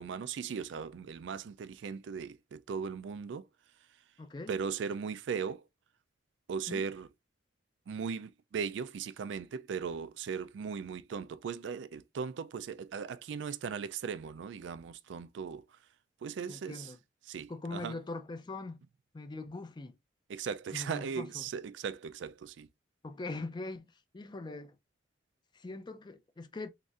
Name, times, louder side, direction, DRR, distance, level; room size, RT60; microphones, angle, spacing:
voice 1, 0.0-3.5 4.5-5.6 6.5-7.1 7.9-15.6 16.2-16.9 17.3-18.0 20.3-22.7, right 6 dB, 70° right, 0.3 m, -38 dB
voice 2, 4.2-4.5 6.7-6.9 16.5-17.0 17.5-18.8 19.1-20.0 20.7-21.5 23.0-23.9 24.1-24.8 25.5-26.7, left 2 dB, 25° left, 0.4 m, -41 dB
3.9 x 2.5 x 2.4 m
head